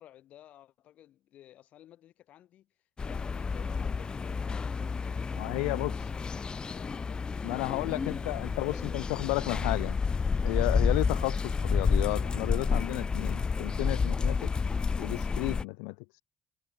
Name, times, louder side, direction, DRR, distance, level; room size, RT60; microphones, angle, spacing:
voice 1, 0.0-2.7 3.0-9.5, left 12 dB, 70° left, 6.6 m, -55 dB
sound 1, 3.0-15.6, left 5 dB, 35° left, 1.5 m, -30 dB
voice 2, 5.4-6.1 7.4-10.0 10.4-14.5 15.0-16.2, left 40 dB or more, 90° left, 0.6 m, -33 dB
supercardioid pair, 65°, 2 cm